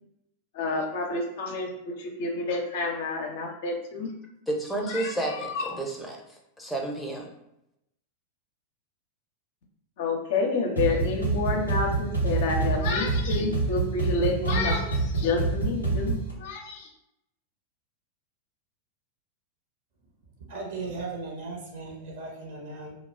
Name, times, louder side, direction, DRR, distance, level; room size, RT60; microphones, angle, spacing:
voice 1, 0.5-4.1 4.9-5.1 5.4-5.7 10.0-16.9, left 3 dB, 50° left, 2 dB, 0.5 m, -29 dB
voice 2, 4.5-7.3, right 2 dB, 5° left, 0 dB, 0.6 m, -31 dB
sound 1, 10.8-16.3, right 3 dB, 90° right, 0.9 m, -27 dB
voice 3, 20.5-22.9, right 3 dB, 55° right, -1 dB, 0.7 m, -37 dB
2.3 x 2.1 x 3.2 m, 0.82 s
figure-of-eight pair, 90°, 0 cm